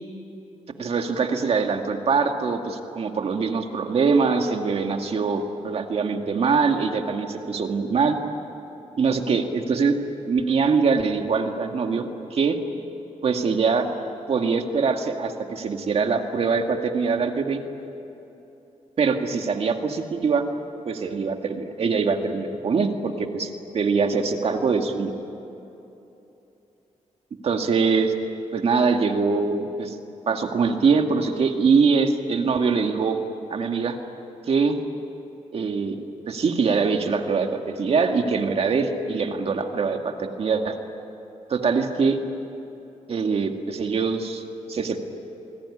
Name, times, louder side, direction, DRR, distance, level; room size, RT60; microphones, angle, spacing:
voice 1, 0.8-8.2 9.0-10.0 10.3-12.6 13.2-13.9 14.3-17.6 19.0-20.4 20.9-25.1 27.4-28.1 28.5-30.0 30.3-33.2 33.5-34.0 34.5-34.8 35.5-36.0 36.3-40.8 41.5-42.2 43.1-45.0, right 5 dB, 50° right, 4 dB, 2.1 m, -23 dB
28.5 x 21.0 x 10.0 m, 3.0 s
wide cardioid pair, 175°, 13 cm